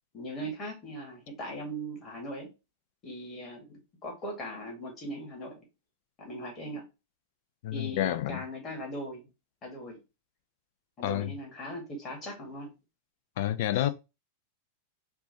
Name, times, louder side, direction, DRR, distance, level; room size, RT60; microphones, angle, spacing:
voice 1, 0.1-2.5 3.0-5.6 6.2-6.8 7.7-9.2 9.6-10.0 11.0-12.7 13.7-13.9, equal, 30° left, 2.0 m, -39 dB
voice 2, 7.6-8.4 11.0-11.3 13.4-13.9, left 13 dB, 55° left, 0.5 m, -29 dB
4.6 x 2.6 x 3.9 m
figure-of-eight pair, 90°, 0 cm